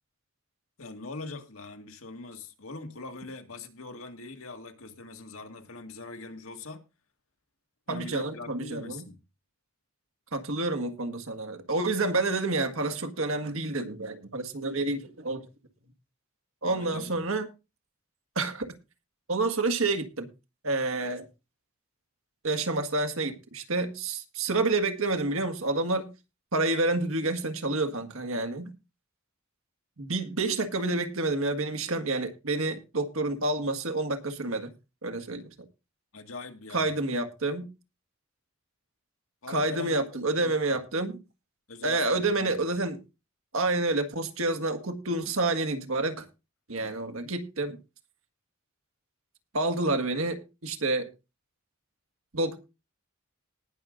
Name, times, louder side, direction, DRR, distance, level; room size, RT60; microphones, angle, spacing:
voice 1, 0.8-6.8 7.9-9.2 16.7-17.2 36.1-37.1 39.4-39.9 40.4-40.8 41.7-42.5, left 3 dB, 75° left, 1.9 m, -42 dB
voice 2, 7.9-9.1 10.3-15.4 16.6-17.5 18.4-18.7 19.3-20.3 20.6-21.3 22.4-26.1 26.5-28.7 30.0-34.7 35.0-35.5 36.7-37.7 39.5-41.2 41.8-43.0 43.5-46.3 46.7-47.8 49.5-51.1 52.3-52.6, right 2 dB, 75° right, 1.7 m, -29 dB
19.5 x 6.4 x 3.8 m
head